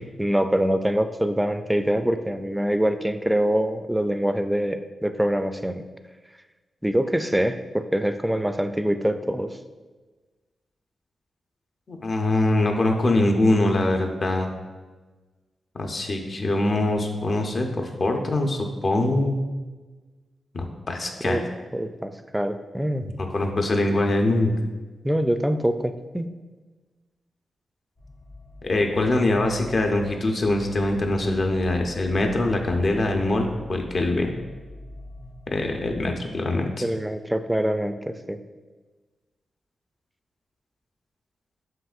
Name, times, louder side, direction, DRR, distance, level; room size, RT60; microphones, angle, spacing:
voice 1, 0.2-5.9 6.8-9.5 21.2-21.4 21.7-23.0 25.0-26.3 36.8-38.4, equal, 5° right, 9 dB, 0.3 m, -24 dB
voice 2, 11.9-14.5 15.8-19.4 20.5-21.4 23.0-24.5 28.6-34.3 35.5-36.7, left 2 dB, 55° left, 3 dB, 0.7 m, -23 dB
sound 1, 28.0-36.1, left 1 dB, 80° left, 1.1 m, -43 dB
7.4 x 2.9 x 2.5 m, 1.3 s
cardioid pair, 60°, 0 cm